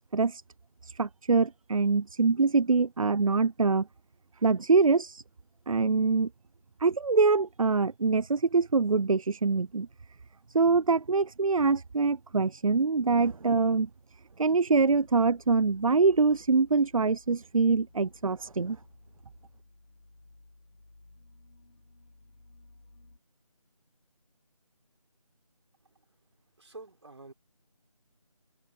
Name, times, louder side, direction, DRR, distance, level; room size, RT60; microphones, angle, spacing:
voice 1, 0.8-3.9 4.4-5.2 5.7-6.3 6.8-9.9 10.5-13.9 14.4-18.8, right 4 dB, 65° right, 0.6 m, -24 dB
sound 1, 14.7-23.2, left 2 dB, 80° left, 7.9 m, -57 dB
voice 2, 26.6-27.3, right 3 dB, 50° right, 4.4 m, -47 dB
figure-of-eight pair, 175°, 19 cm